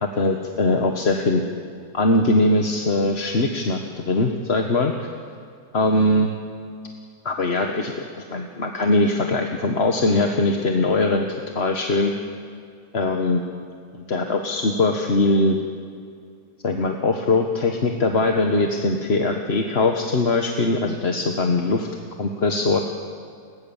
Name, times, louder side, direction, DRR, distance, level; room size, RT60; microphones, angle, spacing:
voice 1, 0.0-1.4 1.9-4.9 5.7-6.3 7.2-11.3 11.5-12.1 12.9-13.4 13.9-15.6 16.6-21.9 22.2-22.8, left 2 dB, 40° left, 3 dB, 1.5 m, -21 dB
29.0 x 21.5 x 7.3 m, 2.3 s
omnidirectional pair, 1.9 m